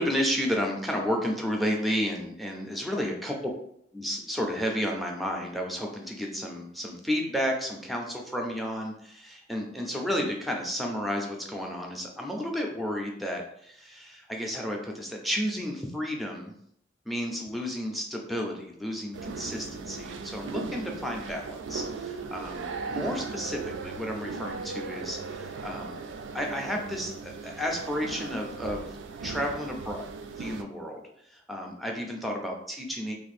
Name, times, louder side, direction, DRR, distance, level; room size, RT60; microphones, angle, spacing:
voice 1, 0.0-3.3 3.9-16.5 17.1-26.0 26.3-29.0 29.2-30.0 30.4-31.0 31.2-33.1, equal, ahead, 0 dB, 0.4 m, -32 dB
sound 1, 19.1-30.6, right 4 dB, 70° right, 0.3 m, -38 dB
2.5 x 2.5 x 4.1 m, 0.71 s
head